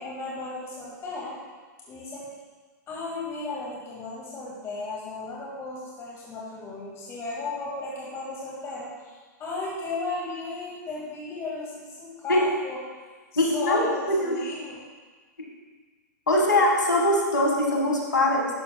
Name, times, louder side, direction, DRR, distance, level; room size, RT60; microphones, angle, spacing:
voice 1, 0.0-1.4 1.9-2.3 2.9-12.8 13.3-14.8, left 3 dB, 25° left, -5 dB, 1.9 m, -35 dB
voice 2, 13.4-14.4 16.3-18.5, left 1 dB, 85° left, 0 dB, 1.7 m, -22 dB
12.0 x 6.9 x 2.3 m, 1.4 s
hypercardioid pair, 115°, 10 cm